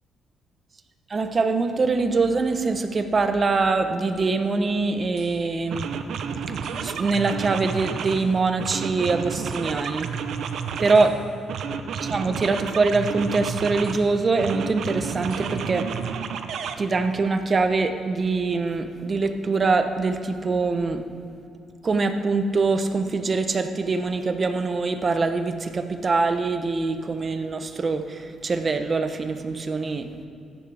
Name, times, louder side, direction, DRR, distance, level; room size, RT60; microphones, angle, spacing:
voice 1, 1.1-5.9 6.4-6.6 6.8-10.1 10.8-11.1 12.0-15.9 16.8-21.0 21.8-30.1, right 3 dB, 35° right, 7 dB, 0.9 m, -23 dB
sound 1, 5.2-5.3 5.7-8.3 8.6-11.2 11.5-14.0 14.4-16.7, right 6 dB, 70° right, 0.7 m, -31 dB
14.5 x 10.5 x 3.5 m, 2.6 s
cardioid pair, 90°, 0 cm